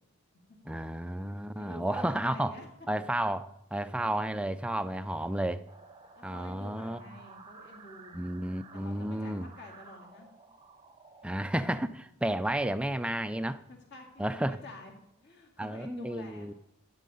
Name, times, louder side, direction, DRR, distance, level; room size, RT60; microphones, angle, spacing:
voice 1, 0.7-2.6 2.9-5.6 6.2-7.0 8.1-9.5 11.2-13.6 14.2-14.6 15.6-16.5, right 1 dB, 5° right, 11 dB, 0.3 m, -32 dB
voice 2, 1.6-2.7 6.2-8.2 8.7-10.3 13.7-14.9 15.2-16.5, left 2 dB, 50° left, 1 dB, 2.1 m, -49 dB
sound 1, 5.7-11.3, right 4 dB, 20° right, 0.7 m, -53 dB
12.0 x 8.5 x 5.3 m, 0.89 s
head